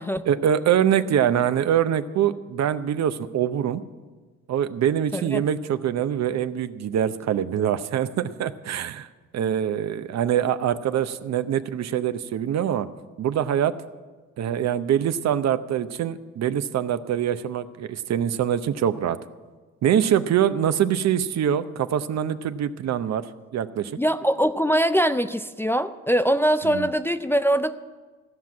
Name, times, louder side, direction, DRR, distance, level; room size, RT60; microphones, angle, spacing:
voice 1, 0.3-3.8 4.5-9.1 9.3-12.9 13.2-13.8 14.4-19.2 19.8-23.2 23.5-23.9 26.7-26.9, right 9 dB, 60° right, 12 dB, 0.7 m, -24 dB
voice 2, 5.1-5.4 24.0-27.7, equal, 10° left, 9 dB, 0.4 m, -22 dB
15.0 x 6.0 x 9.4 m, 1.3 s
cardioid pair, 90°, 30 cm